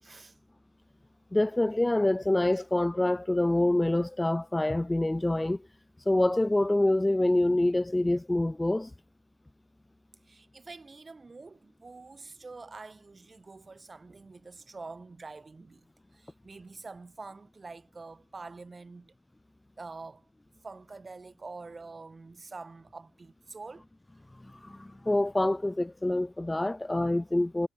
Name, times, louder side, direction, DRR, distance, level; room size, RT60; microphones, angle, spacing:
voice 1, 0.0-0.4 10.2-15.9 16.1-19.1 19.8-20.3 20.6-23.9, right 3 dB, 25° right, 4.4 m, -46 dB
voice 2, 1.3-5.6 6.1-8.9 24.4-27.7, left 1 dB, 10° left, 0.4 m, -26 dB
cardioid pair, 90°, 0 cm